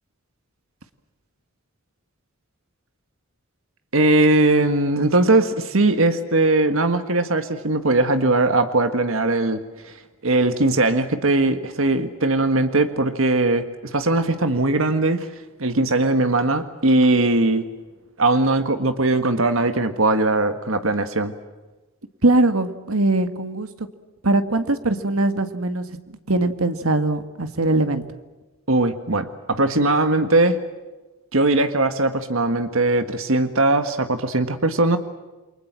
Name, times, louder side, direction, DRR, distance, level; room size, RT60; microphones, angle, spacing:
voice 1, 3.9-9.9 10.2-15.3 15.6-17.7 18.2-21.3 28.7-30.6 31.3-35.0, right 2 dB, 70° right, 9 dB, 1.7 m, -20 dB
voice 2, 22.2-23.9 24.2-28.0, right 2 dB, 90° right, 9 dB, 1.9 m, -21 dB
29.5 x 23.5 x 7.5 m, 1.2 s
head